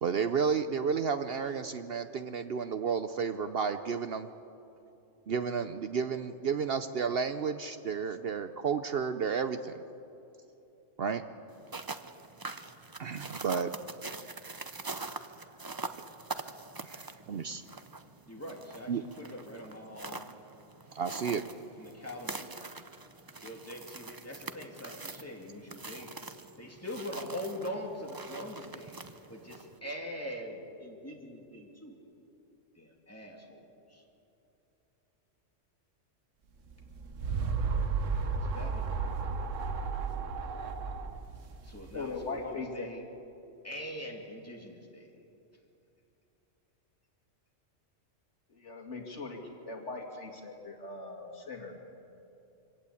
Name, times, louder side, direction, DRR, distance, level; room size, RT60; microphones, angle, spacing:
voice 1, 0.0-4.3 5.3-9.8 11.0-11.2 13.0-13.7 14.9-15.1 16.8-17.6 18.9-19.0 20.9-21.4, right 6 dB, 55° right, 10 dB, 0.8 m, -32 dB
sound 1, 11.5-29.8, right 3 dB, 25° right, 0.6 m, -44 dB
voice 2, 18.3-20.3 21.8-22.6 23.4-26.1 26.6-29.0 29.3-32.0 32.7-34.0 38.3-39.3 41.6-43.0 43.6-45.1, equal, 10° left, 0 dB, 2.8 m, -43 dB
sound 2, 36.7-42.3, right 4 dB, 85° right, 1.4 m, -33 dB
voice 3, 41.9-42.9 48.5-49.4 49.6-51.7, left 3 dB, 70° left, 2 dB, 2.7 m, -40 dB
24.5 x 17.0 x 8.4 m, 2.8 s
omnidirectional pair, 1.3 m